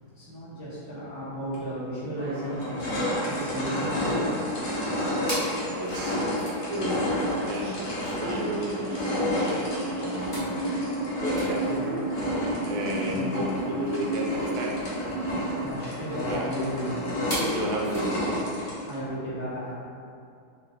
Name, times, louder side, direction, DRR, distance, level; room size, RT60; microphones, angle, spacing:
voice 1, 0.2-4.3 11.5-12.0 13.0-13.3 15.6-17.2 18.8-19.7, equal, 25° right, -12 dB, 0.3 m, -34 dB
sound 1, 1.5-1.6 2.2-19.0, left 1 dB, 55° left, 1.0 m, -30 dB
sound 2, 3.0-18.1, equal, 15° left, 0.7 m, -43 dB
voice 2, 5.8-6.2 6.7-7.0 7.4-10.5 11.2-12.0 12.7-14.8 16.3-16.5 17.4-18.4, right 1 dB, 70° right, -2 dB, 1.1 m, -32 dB
sound 3, 8.5-15.7, right 2 dB, 90° right, 1.4 m, -34 dB
3.2 x 2.9 x 3.4 m, 2.5 s
omnidirectional pair, 2.1 m